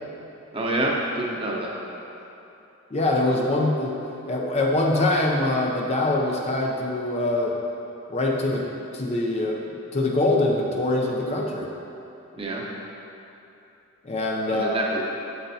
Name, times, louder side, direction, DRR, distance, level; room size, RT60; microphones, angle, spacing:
voice 1, 0.5-1.7 12.3-12.6 14.5-15.0, right 2 dB, 25° right, -3 dB, 0.8 m, -27 dB
voice 2, 2.9-3.9 4.3-7.5 8.1-11.7 14.0-14.8, left 2 dB, 30° left, -1 dB, 0.5 m, -24 dB
7.8 x 7.7 x 2.8 m, 2.8 s
head